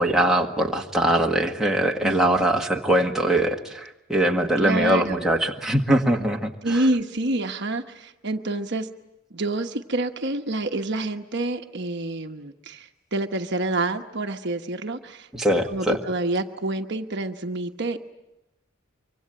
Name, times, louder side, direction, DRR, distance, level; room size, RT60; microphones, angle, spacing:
voice 1, 0.0-6.8 15.3-16.0, right 1 dB, ahead, 0 dB, 1.7 m, -22 dB
voice 2, 2.0-2.5 4.6-5.3 6.6-8.9 9.3-18.0, right 2 dB, 55° right, 5 dB, 1.2 m, -28 dB
25.5 x 24.5 x 8.8 m, 0.92 s
head